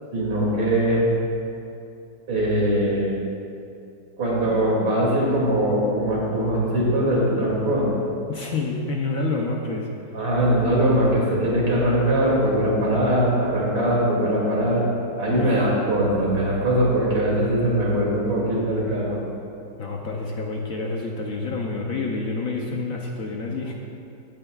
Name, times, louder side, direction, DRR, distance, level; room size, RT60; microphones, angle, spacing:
voice 1, 0.1-1.1 2.3-3.1 4.2-7.9 10.1-14.8 15.2-19.2, right 1 dB, 90° right, -5 dB, 3.2 m, -21 dB
voice 2, 8.3-9.9 15.3-15.7 19.8-23.7, left 3 dB, 60° left, 0 dB, 1.0 m, -28 dB
16.0 x 8.9 x 2.3 m, 2.6 s
omnidirectional pair, 2.0 m